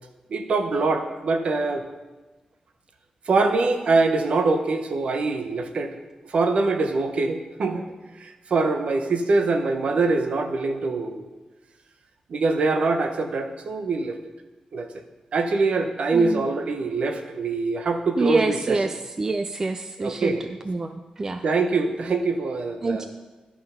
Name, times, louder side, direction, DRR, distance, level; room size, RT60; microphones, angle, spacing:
voice 1, 0.3-1.8 3.3-5.9 6.3-7.8 8.2-11.2 12.3-14.2 14.7-14.9 15.3-18.8 20.0-20.4 21.4-23.1, right 3 dB, 55° right, 6 dB, 0.8 m, -23 dB
voice 2, 16.1-16.5 18.2-21.4 22.8-23.1, right 3 dB, 25° right, 8 dB, 0.3 m, -26 dB
11.0 x 5.6 x 5.6 m, 1.2 s
wide cardioid pair, 165°, 2 cm